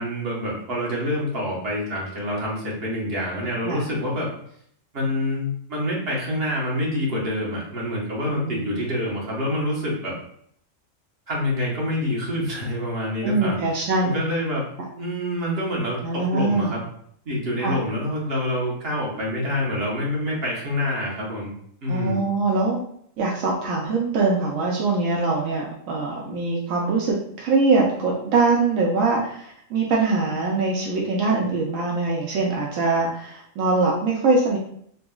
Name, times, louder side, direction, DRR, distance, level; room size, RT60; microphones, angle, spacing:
voice 1, 0.0-4.3 4.9-10.1 11.3-13.6 14.0-14.7 15.0-16.8 17.2-21.5 21.8-22.2, left 1 dB, 50° right, -5 dB, 1.3 m, -26 dB
voice 2, 8.3-8.7 13.2-14.2 16.0-16.7 17.6-17.8 21.9-22.8 23.2-34.6, right 3 dB, 80° right, -2 dB, 1.0 m, -23 dB
3.9 x 2.7 x 2.3 m, 0.67 s
omnidirectional pair, 1.4 m